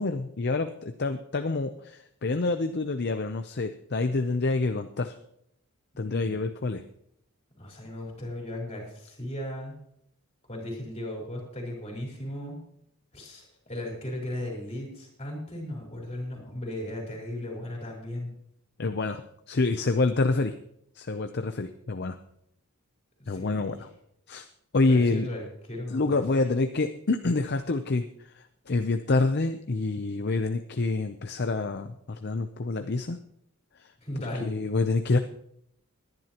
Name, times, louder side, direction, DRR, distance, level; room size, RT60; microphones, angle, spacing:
voice 1, 0.0-5.1 6.0-6.8 18.8-19.2 19.5-20.5 21.0-22.2 23.3-23.9 24.3-24.5 24.7-25.3 25.9-33.2 33.8-33.9 34.4-35.2, left 3 dB, 50° left, 7 dB, 0.6 m, -27 dB
voice 2, 6.0-6.4 7.6-9.8 10.5-12.6 13.1-18.3 23.2-23.8 24.9-26.4 34.0-34.5, left 1 dB, 30° left, -1 dB, 4.4 m, -36 dB
20.5 x 10.5 x 3.0 m, 0.73 s
head